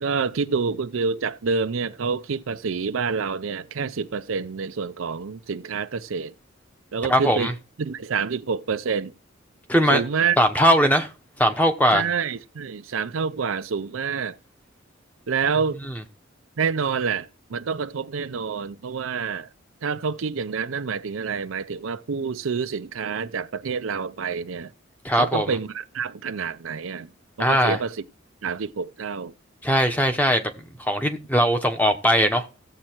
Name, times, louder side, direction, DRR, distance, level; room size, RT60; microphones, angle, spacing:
voice 1, 0.0-6.3 6.9-7.5 7.8-9.1 9.9-10.4 11.9-14.4 15.3-15.8 16.6-19.5 19.8-24.7 25.1-27.1 27.4-28.0 28.4-29.3, right 5 dB, 80° right, 0.5 m, -27 dB
voice 2, 7.1-7.5 9.7-10.0 10.4-11.1 11.4-12.1 25.0-25.5 27.4-27.8 29.6-30.5 30.8-32.4, equal, 10° left, 0.9 m, -20 dB
15.0 x 7.4 x 4.5 m
head